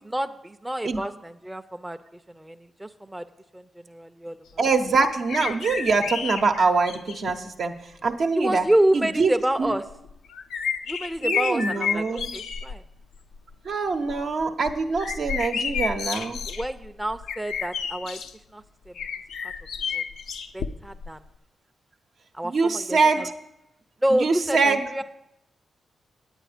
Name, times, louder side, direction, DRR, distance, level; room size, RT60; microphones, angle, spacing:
voice 1, 0.1-2.0 2.3-3.2 3.5-4.4 8.3-9.8 10.9-12.8 16.5-18.2 18.5-18.9 19.9-20.0 20.5-21.2 22.3-23.3 24.0-25.0, right 1 dB, 10° right, 7 dB, 0.5 m, -28 dB
voice 2, 4.6-8.7 8.9-9.8 11.2-12.3 13.6-16.4 22.4-23.3 24.1-25.0, right 4 dB, 65° right, 4 dB, 0.8 m, -24 dB
sound 1, 5.3-7.3 8.2-8.3 9.9-12.8 13.1-13.5 13.9-18.3 18.9-21.1 21.3-21.4, left 6 dB, 80° left, 0.4 m, -31 dB
9.1 x 8.6 x 5.0 m, 0.85 s
supercardioid pair, 45°, 0 cm